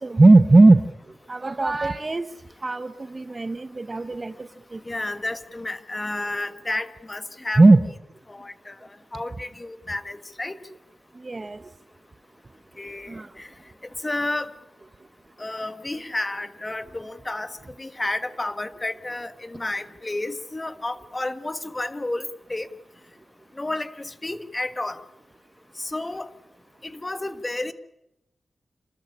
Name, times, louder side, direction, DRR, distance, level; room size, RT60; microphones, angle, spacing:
voice 1, 0.0-0.8 1.3-2.3 2.6-4.3 4.7-4.8 7.6-7.8 11.2-11.6 13.1-13.3, right 2 dB, 35° right, 11 dB, 0.8 m, -17 dB
voice 2, 4.8-7.6 8.3-8.8 9.1-10.6 12.8-13.5 13.8-14.5 15.4-22.7 23.6-25.0 25.8-26.3 26.8-27.7, left 2 dB, 25° left, 11 dB, 1.4 m, -31 dB
27.5 x 13.5 x 9.8 m, 0.89 s
cardioid pair, 80°, 0 cm